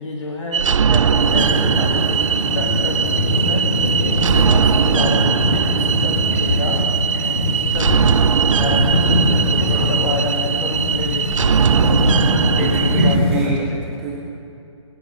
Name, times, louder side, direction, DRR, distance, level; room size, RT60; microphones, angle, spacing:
voice 1, 0.0-6.9 7.2-11.3 12.3-13.9, left 2 dB, 75° left, -1 dB, 1.7 m, -28 dB
sound 1, 0.5-13.2, right 7 dB, 80° right, 0.4 m, -19 dB
sound 2, 1.1-13.5, left 1 dB, 55° left, 3.9 m, -21 dB
voice 2, 9.7-10.3 11.7-13.6 14.0-14.2, right 4 dB, ahead, -7 dB, 0.3 m, -28 dB
22.0 x 8.1 x 5.0 m, 2.7 s
hypercardioid pair, 170°, 16 cm